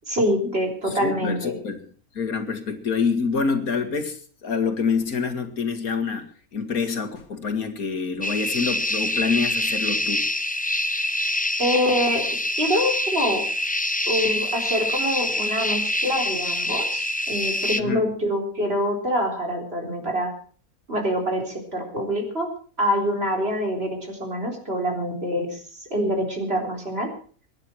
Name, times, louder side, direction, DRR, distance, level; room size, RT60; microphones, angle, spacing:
voice 1, 0.1-1.6 11.6-12.2 12.5-13.4 14.1-20.3 20.9-22.5 22.8-27.1, equal, 40° right, 4.2 m, -25 dB
voice 2, 0.8-1.9 2.1-10.2 17.8-18.1, left 5 dB, 80° left, 2.4 m, -26 dB
sound 1, 8.2-17.8, left 1 dB, 10° left, 0.3 m, -25 dB
24.0 x 10.5 x 4.5 m
omnidirectional pair, 1.5 m